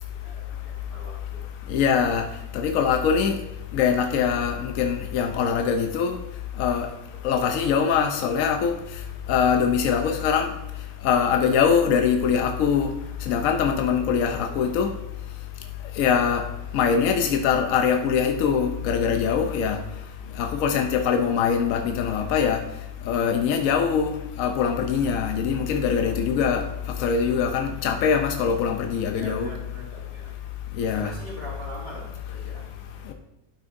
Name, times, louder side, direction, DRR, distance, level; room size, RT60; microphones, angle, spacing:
voice 1, 0.2-1.4 15.9-16.0 20.2-20.4 26.0-26.4 27.7-28.1 29.1-30.4 30.8-33.1, equal, 20° left, -6 dB, 3.3 m, -43 dB
voice 2, 1.7-2.3 2.5-3.4 3.7-6.2 6.6-6.9 7.2-8.7 9.3-10.5 11.0-12.9 13.3-14.9 16.0-16.4 16.7-19.8 20.4-22.6 23.1-24.1 24.4-26.6 27.0-29.5 30.8-31.1, left 7 dB, 65° left, 5 dB, 0.8 m, -22 dB
11.5 x 6.0 x 2.6 m, 0.87 s
omnidirectional pair, 1.9 m